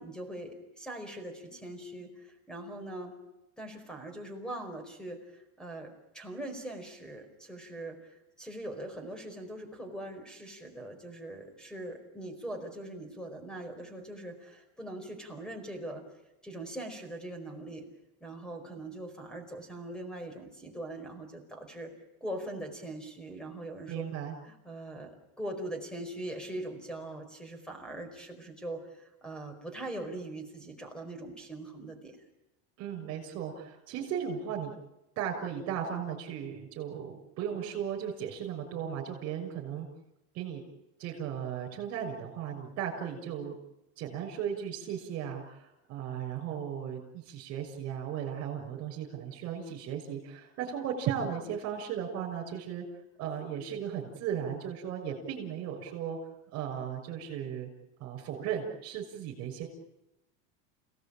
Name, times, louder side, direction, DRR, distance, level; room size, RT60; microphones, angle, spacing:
voice 1, 0.0-3.2 3.6-16.0 16.4-17.8 18.2-21.9 22.2-24.0 24.4-32.2, right 1 dB, ahead, 7 dB, 4.8 m, -41 dB
voice 2, 23.9-24.3 32.8-34.7 35.2-39.9 40.3-40.6 41.0-43.6 44.0-52.8 53.2-56.2 56.5-57.7 58.0-59.7, right 8 dB, 45° right, -3 dB, 6.2 m, -36 dB
30.0 x 18.0 x 8.8 m, 0.94 s
cardioid pair, 160°, 35 cm